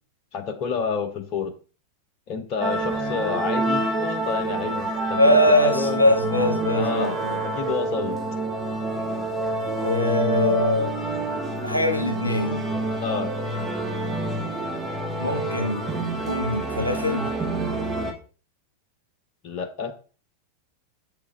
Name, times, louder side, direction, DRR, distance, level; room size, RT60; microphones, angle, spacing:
voice 1, 0.3-1.5 2.3-5.2 5.5-6.0 6.7-7.2 7.4-8.2 13.0-13.3 19.4-19.9, left 5 dB, 40° left, 8 dB, 0.8 m, -29 dB
sound 1, 2.6-18.1, right 2 dB, 20° right, 1.2 m, -27 dB
voice 2, 5.2-7.4 9.8-11.0 11.6-12.6 15.2-15.8 16.3-17.3, left 1 dB, 85° left, 5 dB, 0.9 m, -22 dB
6.9 x 4.8 x 3.3 m, 0.37 s
figure-of-eight pair, 90°, 0 cm